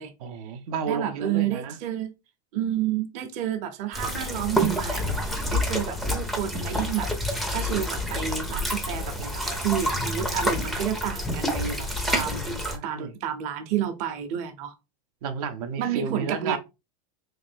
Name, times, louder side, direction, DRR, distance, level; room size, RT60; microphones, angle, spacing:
voice 1, 0.2-1.8 12.6-13.2 15.2-16.6, right 6 dB, 85° right, 0.6 m, -32 dB
voice 2, 0.9-2.1 2.5-14.7 15.8-16.6, right 10 dB, 40° right, 0.6 m, -30 dB
sound 1, 3.9-12.8, left 1 dB, ahead, 0.4 m, -28 dB
3.2 x 2.5 x 3.3 m
supercardioid pair, 150°, 18 cm